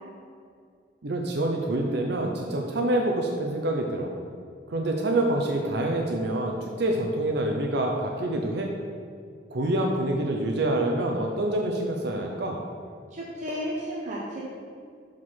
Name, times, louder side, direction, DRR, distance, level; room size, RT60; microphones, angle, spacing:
voice 1, 1.0-4.1 4.7-8.7 9.5-12.6, right 1 dB, 60° right, 1 dB, 0.6 m, -26 dB
voice 2, 13.1-14.4, equal, 40° right, -5 dB, 1.0 m, -33 dB
6.2 x 4.9 x 5.7 m, 2.2 s
head